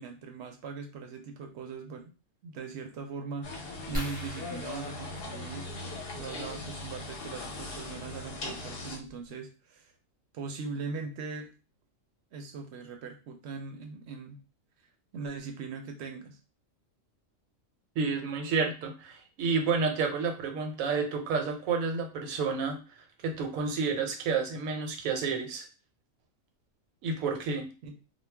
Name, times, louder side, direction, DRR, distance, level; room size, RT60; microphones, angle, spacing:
voice 1, 0.0-2.1 2.4-5.7 6.1-9.9 10.3-11.5 12.3-14.4 15.1-16.4 27.8-28.0, right 4 dB, 65° right, 4 dB, 0.7 m, -40 dB
sound 1, 3.4-9.0, left 2 dB, 55° left, 0.8 m, -40 dB
sound 2, 3.9-6.3 7.9-8.1 8.7-8.8 9.1-9.3, equal, 10° right, 0.7 m, -40 dB
voice 2, 18.0-22.8 23.2-25.7 27.0-27.7, right 5 dB, 90° right, 4 dB, 1.0 m, -30 dB
2.3 x 2.1 x 3.3 m, 0.33 s
omnidirectional pair, 1.4 m